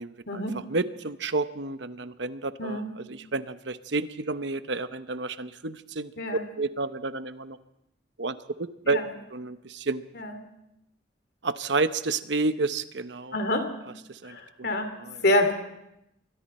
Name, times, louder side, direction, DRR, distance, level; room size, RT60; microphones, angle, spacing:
voice 1, 0.7-2.8 3.1-6.1 6.6-7.6 8.2-9.0 9.3-10.0 11.4-13.3 14.1-14.7 15.0-15.2, right 3 dB, 65° right, 12 dB, 0.9 m, -30 dB
voice 2, 2.6-2.9 6.2-6.4 8.8-9.1 10.1-10.4 13.3-13.7 14.2-14.9 15.2-15.5, left 1 dB, 55° left, 7 dB, 2.8 m, -26 dB
27.0 x 22.5 x 4.3 m, 0.85 s
head